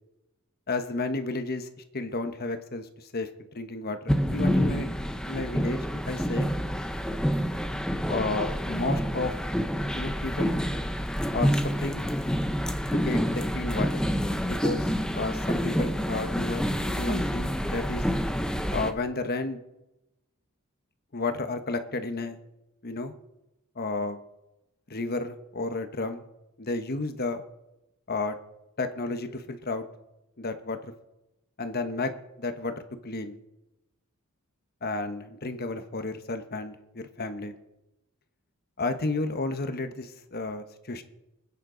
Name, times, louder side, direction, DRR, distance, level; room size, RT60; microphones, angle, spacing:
voice 1, 0.7-1.7 1.9-5.8 6.1-6.5 8.1-9.3 9.9-10.6 11.3-12.0 12.9-14.0 14.5-18.1 18.7-19.6 21.1-22.4 22.8-23.1 23.7-24.2 24.9-26.2 26.6-27.4 28.1-28.3 28.8-29.8 30.4-30.9 31.6-32.1 32.4-32.7 33.0-33.4 34.8-37.6 38.8-41.0, left 3 dB, 45° left, 8 dB, 1.2 m, -32 dB
sound 1, 4.1-18.9, equal, 5° left, 0.8 m, -28 dB
25.5 x 9.7 x 3.9 m, 0.95 s
head